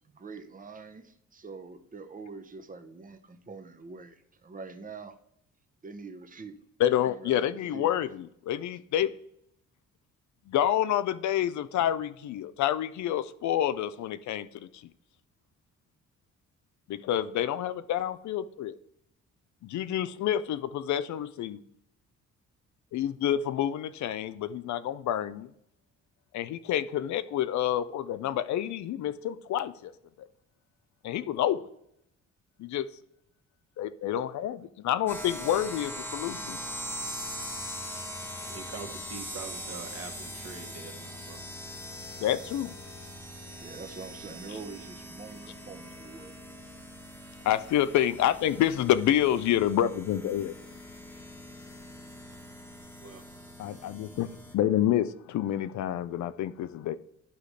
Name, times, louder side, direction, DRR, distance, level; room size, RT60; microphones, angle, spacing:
voice 1, 0.0-5.1 5.8-6.6 7.0-7.9 43.6-46.4, right 4 dB, 25° right, 0.9 m, -45 dB
voice 2, 6.8-9.1 10.5-14.8 16.9-18.8 19.6-21.6 22.9-25.5 26.3-29.9 31.0-31.6 32.6-32.9 33.8-36.6 42.2-42.7 47.4-50.6 53.6-56.9, left 11 dB, 70° left, 0.5 m, -28 dB
sound 1, 35.1-54.5, equal, 5° left, 1.2 m, -42 dB
voice 3, 38.4-41.4 53.0-53.3, right 5 dB, 50° right, 1.5 m, -44 dB
12.0 x 4.9 x 3.3 m
cardioid pair, 90°, 30 cm